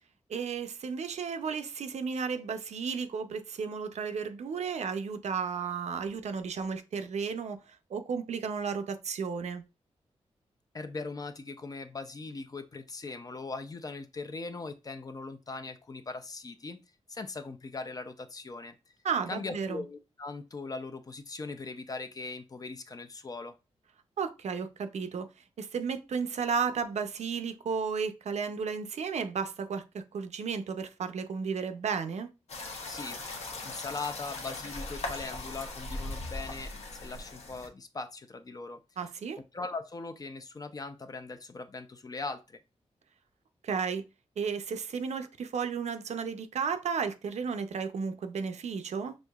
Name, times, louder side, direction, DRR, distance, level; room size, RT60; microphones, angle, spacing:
voice 1, 0.3-9.6 19.0-19.8 24.2-25.3 25.6-32.3 39.0-39.4 43.6-44.0 44.4-49.1, right 6 dB, 70° right, 0.5 m, -33 dB
voice 2, 10.7-16.8 17.1-18.8 19.3-23.5 32.9-33.2 33.6-36.7 37.0-39.1 39.5-42.6, left 3 dB, 30° left, 0.4 m, -40 dB
sound 1, 32.5-37.7, left 2 dB, 65° left, 0.9 m, -39 dB
6.2 x 2.6 x 2.3 m
wide cardioid pair, 150°, 12 cm